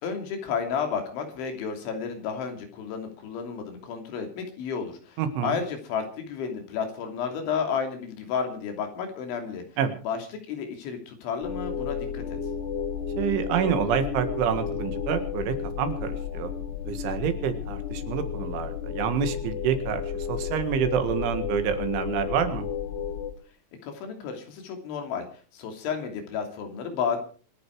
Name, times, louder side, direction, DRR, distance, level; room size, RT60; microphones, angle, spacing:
voice 1, 0.0-9.6 10.1-10.2 10.5-12.4 23.8-25.3 25.5-27.2, left 6 dB, 85° left, 5 dB, 5.3 m, -32 dB
voice 2, 5.2-5.6 9.8-10.0 13.2-16.5 16.9-22.7, right 8 dB, 85° right, 8 dB, 4.2 m, -28 dB
sound 1, 11.4-23.3, left 7 dB, 65° left, 3.9 m, -32 dB
26.0 x 10.0 x 4.7 m, 0.40 s
omnidirectional pair, 5.3 m